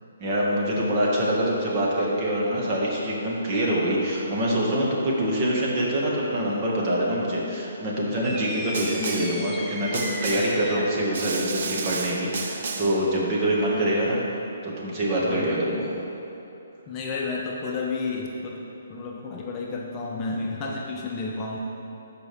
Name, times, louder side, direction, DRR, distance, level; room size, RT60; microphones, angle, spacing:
voice 1, 0.2-14.2 14.6-15.9, right 1 dB, 35° right, -4 dB, 1.8 m, -25 dB
sound 1, 8.2-11.1, equal, ahead, 0.6 m, -36 dB
Snare drum, 8.7-9.4 9.9-10.6 11.1-13.0, right 4 dB, 55° right, 0.7 m, -32 dB
voice 2, 16.9-18.6 18.9-21.6, left 3 dB, 25° left, -2 dB, 0.9 m, -31 dB
13.5 x 5.0 x 3.5 m, 2.9 s
hypercardioid pair, 140°, 0 cm